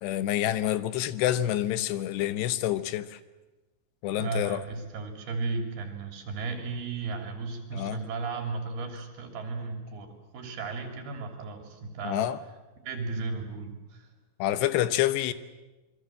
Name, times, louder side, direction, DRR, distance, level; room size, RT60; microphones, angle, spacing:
voice 1, 0.0-3.2 4.0-4.6 7.7-8.0 12.0-12.4 14.4-15.3, left 13 dB, 85° left, 13 dB, 3.2 m, -27 dB
voice 2, 4.1-12.3 12.9-14.1, right 4 dB, 70° right, 4 dB, 5.1 m, -35 dB
27.5 x 22.5 x 7.7 m, 1.1 s
omnidirectional pair, 4.7 m